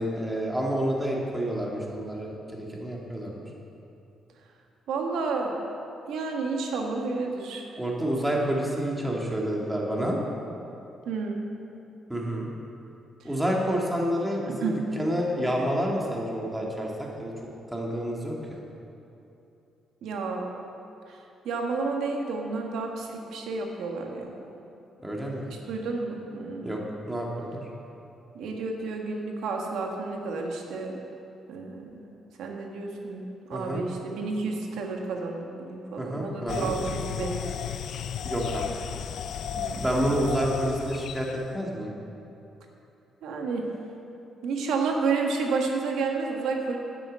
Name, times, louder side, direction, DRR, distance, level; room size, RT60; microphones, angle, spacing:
voice 1, 0.0-3.4 7.8-10.2 12.1-12.5 13.2-17.3 17.7-18.6 25.0-25.5 26.6-26.8 27.1-27.6 33.5-33.8 36.0-36.7 38.2-38.7 39.8-41.9, equal, 10° right, -2 dB, 2.3 m, -29 dB
voice 2, 4.9-5.5 6.1-7.7 11.0-11.5 14.5-14.8 20.0-20.4 21.1-21.2 21.4-24.4 25.5-26.9 28.3-31.0 31.5-32.0 32.4-37.4 39.6-40.0 43.2-43.7 44.4-46.8, right 4 dB, 80° right, 1 dB, 1.6 m, -31 dB
sound 1, 36.5-41.5, left 8 dB, 70° left, 0.4 m, -34 dB
9.9 x 8.7 x 7.5 m, 2.9 s
cardioid pair, 90°, 0 cm